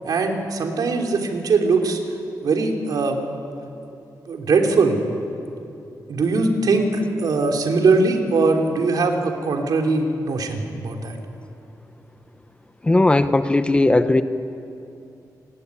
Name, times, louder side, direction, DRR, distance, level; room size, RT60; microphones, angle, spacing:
voice 1, 0.0-2.0 2.4-3.2 4.3-5.0 6.1-11.1, right 3 dB, 70° right, 3 dB, 3.2 m, -21 dB
voice 2, 12.8-14.2, left 2 dB, 15° left, 10 dB, 0.7 m, -17 dB
28.5 x 20.0 x 9.7 m, 2.7 s
wide cardioid pair, 165°, 7 cm